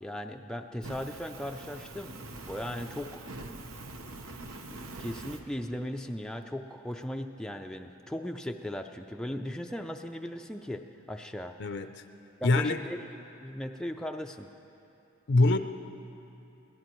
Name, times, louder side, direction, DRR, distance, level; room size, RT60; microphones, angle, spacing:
voice 1, 0.0-3.2 4.7-11.6 12.4-13.0 13.4-14.5, left 1 dB, 5° left, 3 dB, 0.4 m, -37 dB
Fire, 0.8-5.4, right 2 dB, 80° right, 1.0 m, -44 dB
voice 2, 11.6-12.0 12.4-12.8 15.3-15.6, left 2 dB, 55° left, 8 dB, 0.5 m, -24 dB
24.5 x 17.5 x 3.1 m, 2.9 s
head